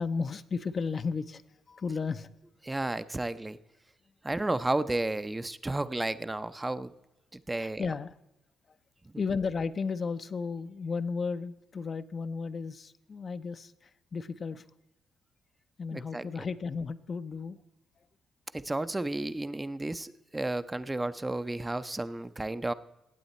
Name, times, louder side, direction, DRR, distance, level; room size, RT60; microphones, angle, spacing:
voice 1, 0.0-1.4 1.7-2.3 7.6-8.1 9.2-14.6 15.8-17.6, left 5 dB, 40° left, 12 dB, 0.5 m, -34 dB
voice 2, 2.6-3.6 4.2-6.9 7.3-7.8 15.9-16.3 18.5-22.7, right 2 dB, 15° right, 12 dB, 0.5 m, -32 dB
17.0 x 7.8 x 4.2 m, 0.93 s
cardioid pair, 90°, 0 cm